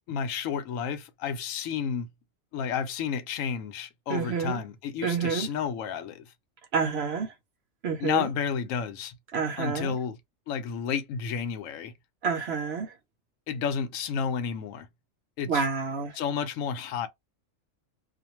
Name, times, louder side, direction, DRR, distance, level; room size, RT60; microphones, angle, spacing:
voice 1, 0.1-2.1 2.5-6.3 8.0-9.1 9.6-10.2 10.5-11.9 13.5-14.9 15.4-15.7 16.1-17.1, left 7 dB, 90° left, 1.0 m, -31 dB
voice 2, 4.1-4.6 5.0-5.5 6.7-7.3 7.8-8.3 9.3-10.0 12.2-12.9 15.5-16.1, right 5 dB, 60° right, 0.8 m, -28 dB
2.4 x 2.1 x 2.9 m
omnidirectional pair, 1.3 m